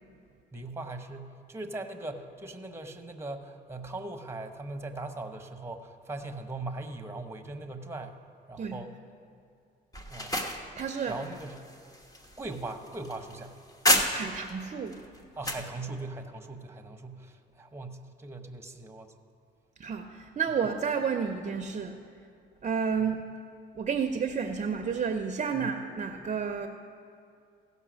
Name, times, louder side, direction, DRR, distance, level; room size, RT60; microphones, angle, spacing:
voice 1, 0.5-8.2 8.5-8.9 10.1-10.4 11.1-11.6 12.4-13.6 15.3-19.1 23.1-23.2 25.5-25.8, right 2 dB, 15° right, 6 dB, 0.9 m, -40 dB
sound 1, 9.9-14.5 14.9-15.7, left 1 dB, 20° left, 1.1 m, -31 dB
voice 2, 10.8-11.2 14.1-15.0 19.8-22.0 22.6-23.2 23.8-26.7, right 6 dB, 35° right, 6 dB, 0.6 m, -31 dB
16.0 x 5.4 x 6.3 m, 2.4 s
cardioid pair, 90°, 20 cm